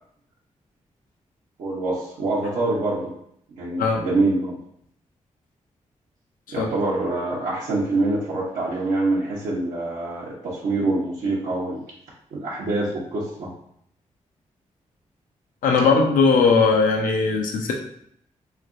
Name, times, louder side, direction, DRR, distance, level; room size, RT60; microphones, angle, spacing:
voice 1, 1.6-3.1 3.6-4.6 6.5-11.8 12.3-13.5, right 2 dB, 80° right, -7 dB, 0.7 m, -25 dB
voice 2, 15.6-17.7, left 4 dB, 85° left, 2 dB, 0.5 m, -18 dB
3.2 x 2.9 x 2.5 m, 0.71 s
supercardioid pair, 50°, 14 cm